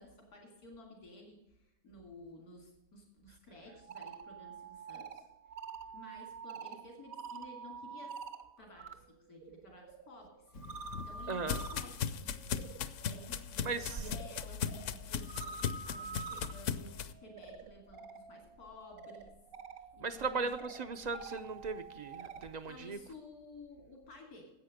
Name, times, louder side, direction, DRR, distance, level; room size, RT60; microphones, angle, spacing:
voice 1, 0.0-5.3 5.9-8.2 8.6-12.4 13.1-19.3 19.7-20.4 22.7-24.5, left 2 dB, 90° left, 3.2 m, -54 dB
sound 1, 3.7-8.9 9.3-22.5, right 5 dB, 70° right, 1.5 m, -48 dB
sound 2, 10.5-17.1, left 7 dB, 65° left, 0.9 m, -38 dB
voice 2, 11.3-11.6 13.6-14.1 20.0-23.0, right 4 dB, 55° right, 0.4 m, -37 dB
10.5 x 8.2 x 6.5 m
omnidirectional pair, 1.6 m